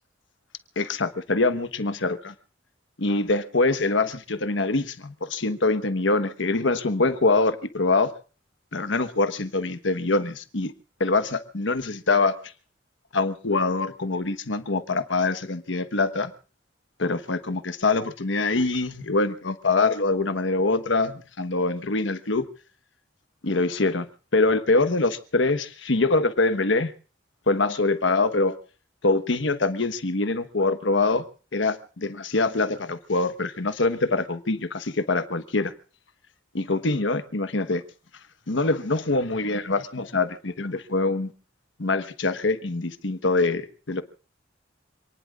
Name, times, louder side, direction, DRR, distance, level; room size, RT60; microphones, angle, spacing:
voice 1, 0.8-2.3 3.0-8.1 8.7-10.7 11.0-12.4 13.1-16.3 17.0-22.4 23.4-24.0 24.3-26.9 27.5-28.5 29.0-31.2 31.5-35.7 36.5-37.8 38.5-41.3 41.8-44.0, left 3 dB, 80° left, 1.2 m, -24 dB
27.5 x 19.0 x 2.5 m
head